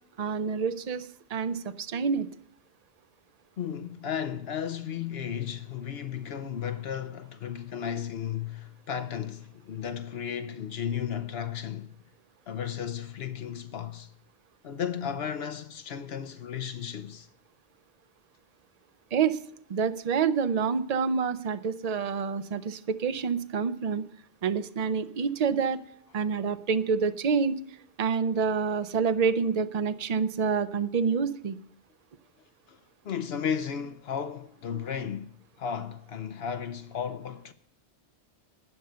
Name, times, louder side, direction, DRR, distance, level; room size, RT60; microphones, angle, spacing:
voice 1, 0.2-2.3 19.1-19.4 19.7-24.0 24.4-25.8 26.1-27.6 28.0-31.6, right 6 dB, 45° right, 0.6 m, -27 dB
voice 2, 3.6-11.9 12.5-14.1 14.6-17.3 32.7-32.8 33.0-37.5, left 8 dB, 70° left, 0.9 m, -34 dB
12.5 x 9.1 x 6.7 m
omnidirectional pair, 1.1 m